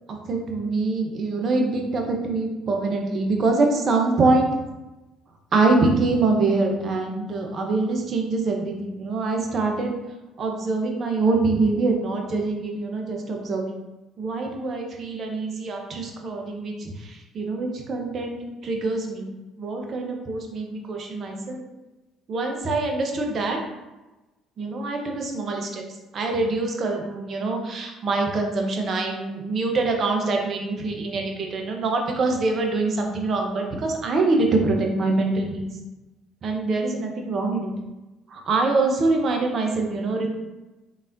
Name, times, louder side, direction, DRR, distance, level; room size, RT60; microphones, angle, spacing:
voice 1, 0.1-4.5 5.5-9.9 10.4-13.8 14.2-21.6 22.3-23.6 24.6-25.8 26.1-35.7 36.4-37.7 38.3-40.3, right 3 dB, 50° right, 2 dB, 0.8 m, -24 dB
3.9 x 3.5 x 2.6 m, 1.1 s
hypercardioid pair, 65°, 0 cm